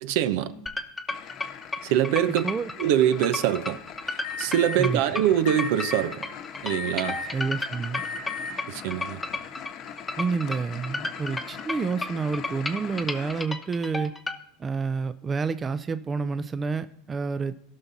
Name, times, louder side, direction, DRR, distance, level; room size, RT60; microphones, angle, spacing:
voice 1, 0.0-0.5 1.8-2.4 2.8-3.8 4.4-6.1 6.6-7.2 8.7-9.2, right 10 dB, 70° right, 0.8 m, -23 dB
sound 1, 0.7-14.4, left 2 dB, 10° left, 1.0 m, -33 dB
sound 2, 1.1-13.5, left 8 dB, 50° left, 1.1 m, -42 dB
voice 2, 2.3-2.7 4.8-5.0 7.3-8.0 10.2-14.1 14.6-17.6, right 4 dB, 20° right, 0.5 m, -29 dB
Alarm, 4.2-4.8 5.5-6.0 6.7-7.4 7.9-8.5, left 5 dB, 70° left, 1.6 m, -34 dB
17.5 x 5.8 x 4.0 m
supercardioid pair, 115°, 0 cm